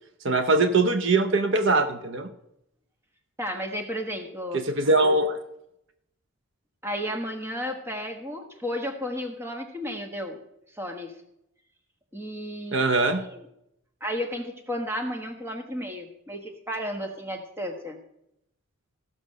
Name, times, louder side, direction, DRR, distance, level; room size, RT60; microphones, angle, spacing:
voice 1, 0.2-2.3 4.5-5.4 12.7-13.2, right 2 dB, 55° right, 9 dB, 0.7 m, -22 dB
voice 2, 3.4-4.6 6.8-10.4 10.8-11.1 12.1-13.4 14.0-18.0, equal, 10° right, 5 dB, 1.2 m, -33 dB
15.0 x 6.1 x 6.5 m, 0.83 s
head